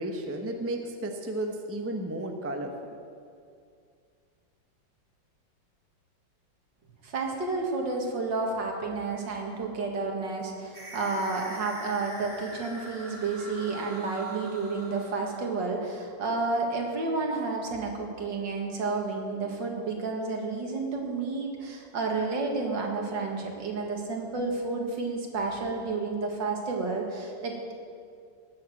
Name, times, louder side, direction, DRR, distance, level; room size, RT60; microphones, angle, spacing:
voice 1, 0.0-3.0, right 1 dB, 10° right, 3 dB, 0.7 m, -33 dB
voice 2, 7.0-27.7, right 3 dB, 70° right, 1 dB, 2.5 m, -31 dB
sound 1, 10.7-15.6, equal, 40° right, 2.3 m, -43 dB
18.0 x 7.1 x 7.7 m, 2.3 s
omnidirectional pair, 2.1 m